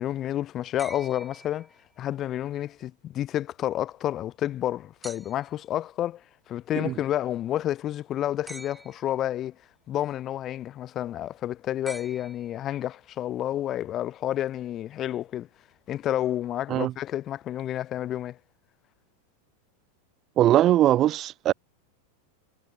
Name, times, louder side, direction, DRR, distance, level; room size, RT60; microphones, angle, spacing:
voice 1, 0.0-1.7 2.0-9.5 9.9-15.5 15.9-18.4, left 12 dB, 30° left, 0.7 m, -30 dB
sound 1, 0.8-2.2 5.0-5.6 8.5-9.3 11.8-12.9 14.5-14.6, right 1 dB, 5° right, 6.2 m, -45 dB
voice 2, 20.4-21.5, right 13 dB, 30° right, 0.5 m, -20 dB
figure-of-eight pair, 90°, 0 cm